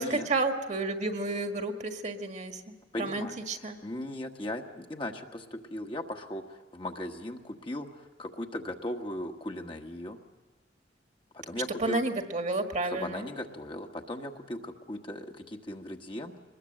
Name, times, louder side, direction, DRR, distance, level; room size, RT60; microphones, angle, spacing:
voice 1, 0.0-3.8 11.8-13.3, right 2 dB, 40° right, 5 dB, 1.6 m, -31 dB
voice 2, 2.9-10.2 11.3-12.0 12.8-16.4, left 1 dB, 30° left, 3 dB, 1.3 m, -38 dB
23.5 x 20.5 x 7.7 m, 1.1 s
head